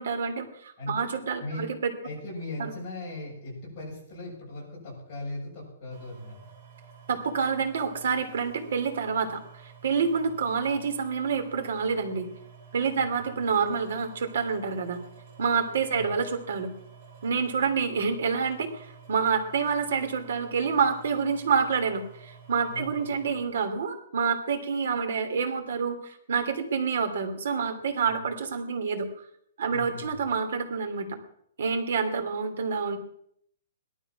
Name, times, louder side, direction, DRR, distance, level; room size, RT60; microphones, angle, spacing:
voice 1, 0.0-1.9 2.6-2.7 7.1-12.3 12.7-15.0 15.4-16.7 17.2-29.1 29.6-31.1 31.6-33.0, right 5 dB, 60° right, 6 dB, 2.9 m, -28 dB
voice 2, 1.4-1.7 2.0-6.4 12.9-13.4 15.9-16.2 22.7-23.3 28.0-28.2 29.7-30.2, left 2 dB, 20° left, -5 dB, 7.5 m, -39 dB
sound 1, 5.9-23.4, right 6 dB, 30° right, 4.9 m, -50 dB
18.0 x 12.5 x 6.0 m, 0.69 s
hypercardioid pair, 175°, 0 cm